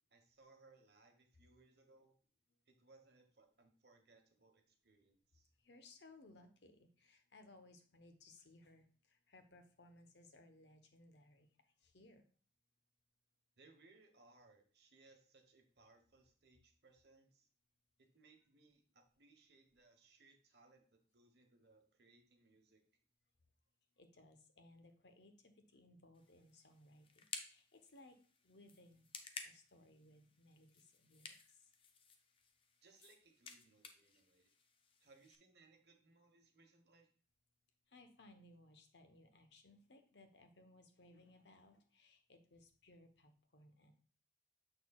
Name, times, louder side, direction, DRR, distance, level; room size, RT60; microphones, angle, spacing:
voice 1, 0.1-2.1 2.7-5.5 13.6-17.5 18.0-22.8 32.8-34.5 35.0-37.1, right 3 dB, 65° right, 4 dB, 1.2 m, -68 dB
voice 2, 5.6-11.5 11.8-12.2 24.0-28.2 28.4-29.1 29.4-31.7 37.9-43.9, left 2 dB, 75° left, 6 dB, 1.0 m, -63 dB
sound 1, 26.1-35.4, left 5 dB, 30° left, 0.6 m, -55 dB
6.8 x 6.2 x 2.3 m, 0.42 s
head